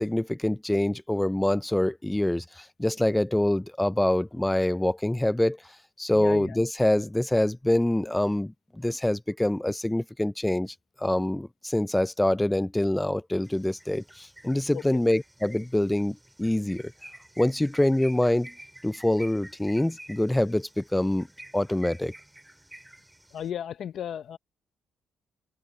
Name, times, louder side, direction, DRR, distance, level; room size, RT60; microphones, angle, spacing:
voice 1, 0.0-5.6 6.0-16.9 17.4-18.5 18.8-21.3 21.5-22.1, left 1 dB, 10° left, 0.3 m, -25 dB
voice 2, 6.1-6.6 14.7-14.8 23.3-24.4, left 9 dB, 65° left, 0.7 m, -34 dB
sound 1, 13.4-23.5, right 1 dB, 5° right, 6.4 m, -50 dB
cardioid pair, 90°, 0 cm